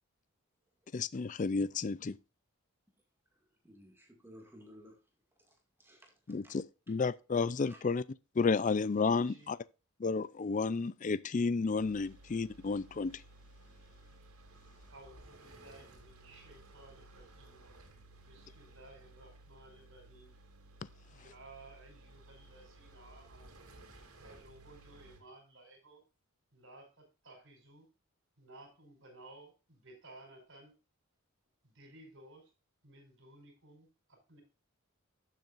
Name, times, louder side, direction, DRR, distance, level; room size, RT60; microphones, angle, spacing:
voice 1, 0.9-2.1 6.3-8.0 8.4-9.6 10.0-13.2, left 4 dB, 35° left, 0.4 m, -32 dB
voice 2, 3.6-5.0 5.4-6.6 6.9-7.0 7.6-7.8, equal, 10° right, 2.1 m, -57 dB
voice 3, 9.1-9.5 14.9-17.6 18.2-20.3 21.1-23.6 24.2-26.0 26.5-27.9 28.4-30.7 31.6-32.5 32.8-34.4, right 2 dB, 60° right, 4.8 m, -57 dB
sound 1, 11.8-25.2, right 2 dB, 85° right, 2.8 m, -57 dB
12.0 x 7.6 x 2.5 m
head